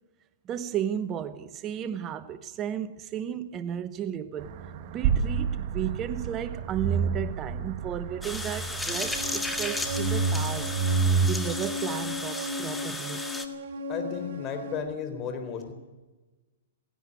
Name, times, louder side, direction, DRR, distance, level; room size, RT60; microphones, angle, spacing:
voice 1, 0.4-4.5 4.9-10.7 11.2-13.2, right 9 dB, 25° right, 0.9 m, -34 dB
sound 1, 4.4-11.3, right 5 dB, 45° right, 1.4 m, -29 dB
sound 2, 8.2-13.5, left 2 dB, 5° left, 1.7 m, -34 dB
sound 3, 8.9-14.8, left 2 dB, 65° right, 3.7 m, -36 dB
voice 2, 13.9-15.7, left 6 dB, 25° left, 3.9 m, -34 dB
16.5 x 16.5 x 9.6 m
hypercardioid pair, 140°, 0 cm